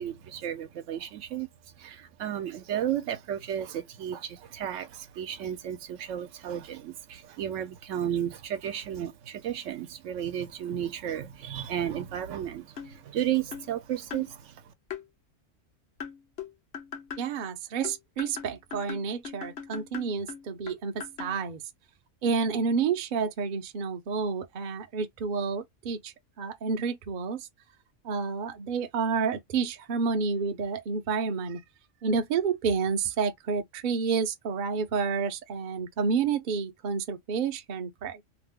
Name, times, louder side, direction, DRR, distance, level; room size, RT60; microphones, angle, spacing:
voice 1, 0.0-1.5 1.8-14.7, right 10 dB, 80° right, 0.9 m, -33 dB
sound 1, 12.8-13.0 13.5-13.7 14.1-14.3 14.9-15.0 16.0-17.3 17.8-21.4, left 7 dB, 60° left, 0.9 m, -40 dB
voice 2, 17.2-21.6 22.2-27.5 28.0-31.6 32.0-38.2, right 5 dB, 55° right, 0.6 m, -29 dB
2.8 x 2.0 x 3.5 m
omnidirectional pair, 1.3 m